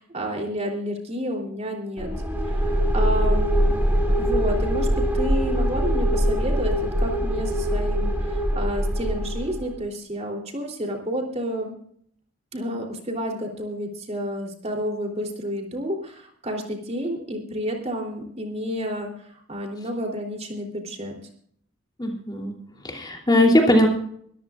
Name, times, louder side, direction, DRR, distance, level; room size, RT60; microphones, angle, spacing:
voice 1, 0.0-2.1 2.5-3.7 4.2-4.9 5.1-11.7 12.5-19.1 19.5-21.2, equal, 35° right, 1 dB, 3.2 m, -30 dB
sound 1, 2.0-9.7, equal, 10° right, 4.5 m, -23 dB
voice 2, 22.0-22.5 22.8-23.9, left 1 dB, 20° left, 1 dB, 3.0 m, -19 dB
23.5 x 14.5 x 2.5 m, 0.64 s
head